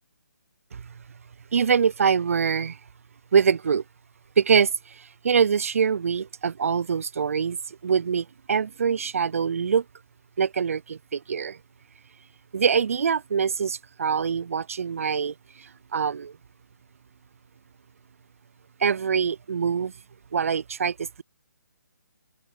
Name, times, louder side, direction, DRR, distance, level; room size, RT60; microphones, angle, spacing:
voice 1, 1.5-2.8 3.3-3.8 4.4-9.8 10.4-11.6 12.5-16.4 18.8-19.9 20.3-21.2, right 6 dB, 45° right, 0.7 m, -24 dB
figure-of-eight pair, 145°, 10 cm